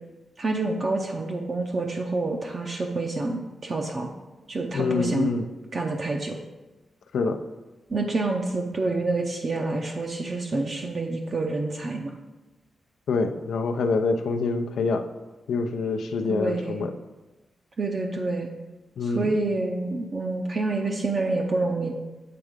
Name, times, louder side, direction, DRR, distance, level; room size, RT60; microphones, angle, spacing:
voice 1, 0.4-4.1 4.5-5.3 5.7-6.4 7.9-12.1 16.3-16.8 17.8-18.5 19.0-21.9, right 2 dB, 35° right, 1 dB, 0.5 m, -27 dB
voice 2, 4.7-5.5 7.1-7.4 13.1-15.1 15.5-16.9 19.0-19.3, left 4 dB, 85° left, 6 dB, 0.5 m, -26 dB
7.6 x 3.6 x 5.0 m, 1.1 s
wide cardioid pair, 160°, 0 cm